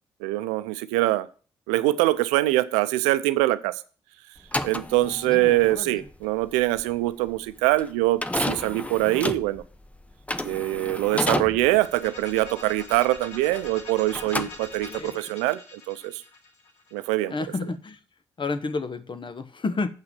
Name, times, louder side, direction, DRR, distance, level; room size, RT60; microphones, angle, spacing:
voice 1, 0.2-1.3 1.7-3.7 4.6-9.6 10.4-16.2 16.9-17.3, right 17 dB, 90° right, 14 dB, 0.5 m, -24 dB
sound 1, 4.4-13.8 14.1-15.1, left 1 dB, 10° left, 0.9 m, -32 dB
voice 2, 5.0-6.0 11.1-11.4 14.9-15.3 17.3-18.0 18.4-19.9, left 3 dB, 45° left, 11 dB, 1.2 m, -31 dB
sound 2, 11.6-17.4, left 2 dB, 80° left, 2.5 m, -43 dB
7.6 x 5.9 x 7.7 m, 0.38 s
hypercardioid pair, 45°, 12 cm